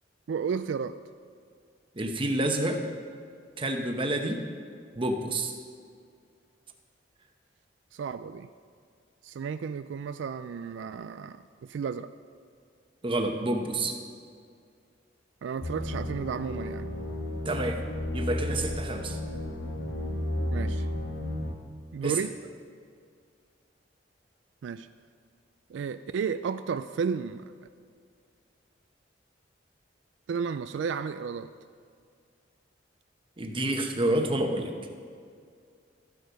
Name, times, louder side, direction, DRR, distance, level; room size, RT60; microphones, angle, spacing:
voice 1, 0.3-1.0 7.9-8.5 9.2-12.1 15.4-16.9 20.5-20.9 21.9-22.4 24.6-24.9 25.7-27.4 30.3-31.5, right 6 dB, 80° right, 11 dB, 0.3 m, -33 dB
voice 2, 2.0-2.8 3.6-4.4 5.0-5.5 13.0-13.9 17.4-17.8 18.1-19.2 22.0-22.2 33.4-34.7, right 1 dB, 30° right, 4 dB, 1.0 m, -28 dB
sound 1, 15.6-21.5, left 1 dB, 75° left, 1.2 m, -33 dB
13.5 x 8.2 x 5.3 m, 2.2 s
head